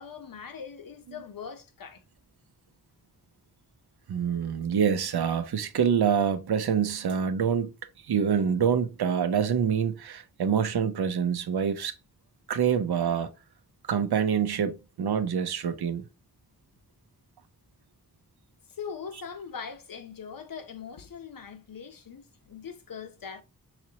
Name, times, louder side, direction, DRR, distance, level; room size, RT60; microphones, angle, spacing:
voice 1, 0.0-2.0 18.7-23.4, left 6 dB, 60° left, 0.7 m, -41 dB
voice 2, 4.1-7.7 8.0-11.9 12.5-13.3 13.9-16.0, right 7 dB, 85° right, 0.6 m, -26 dB
4.9 x 3.1 x 2.8 m
wide cardioid pair, 95°, 37 cm